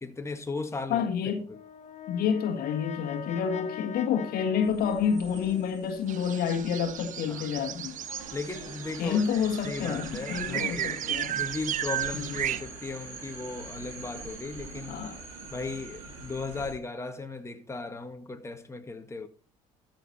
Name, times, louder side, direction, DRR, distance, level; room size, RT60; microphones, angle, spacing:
voice 1, 0.0-1.1 1.5-1.6 7.3-7.5 8.3-9.2 9.6-15.0 15.5-19.3, left 3 dB, 15° left, 1.6 m, -37 dB
voice 2, 0.9-1.5 2.1-8.0 9.0-11.4 12.1-12.4 14.9-15.2, left 7 dB, 65° left, 1.6 m, -29 dB
Brass instrument, 1.5-5.9, left 9 dB, 45° left, 1.5 m, -42 dB
sound 1, 4.6-16.7, right 3 dB, 90° right, 2.9 m, -43 dB
sound 2, 6.1-12.6, right 12 dB, 50° right, 0.6 m, -35 dB
13.5 x 6.0 x 4.2 m
hypercardioid pair, 60°, 17 cm